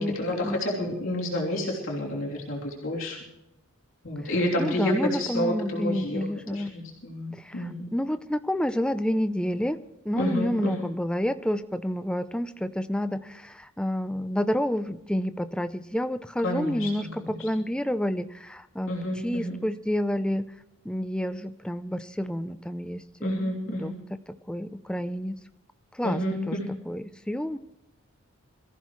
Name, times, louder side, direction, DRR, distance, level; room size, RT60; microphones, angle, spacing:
voice 1, 0.0-3.2 4.0-6.2 6.5-7.9 10.2-10.9 16.4-17.5 18.9-19.6 23.2-24.0 26.0-26.4, left 1 dB, 65° left, -3 dB, 3.2 m, -30 dB
voice 2, 4.6-6.7 7.3-9.8 10.0-18.9 19.2-20.5 20.8-23.9 24.3-25.4 25.9-26.6 26.9-27.6, equal, 5° left, 10 dB, 0.5 m, -29 dB
23.5 x 14.5 x 3.2 m, 0.92 s
head